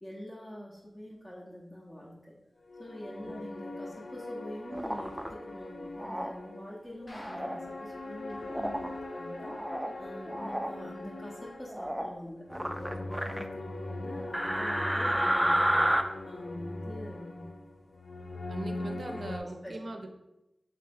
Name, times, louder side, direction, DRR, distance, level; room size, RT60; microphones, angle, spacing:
voice 1, 0.0-2.4 2.8-9.6 10.0-17.5 19.3-19.8, equal, 30° left, -6 dB, 0.7 m, -45 dB
sound 1, 2.6-19.4, left 2 dB, 80° left, 0.4 m, -41 dB
sound 2, 4.7-5.3 6.0-6.3 7.1-7.6 8.5-8.9 9.4-9.9 10.3-10.7 11.7-12.1 12.5-13.4 14.3-16.0, equal, 10° right, 0.3 m, -30 dB
sound 3, 7.1-7.9 8.3-8.4 8.6-8.7 9.2-9.3, left 1 dB, 55° left, 1.0 m, -51 dB
voice 2, 18.5-20.1, right 2 dB, 65° right, 5 dB, 0.5 m, -40 dB
3.3 x 2.9 x 3.4 m, 0.93 s
cardioid pair, 40°, 0 cm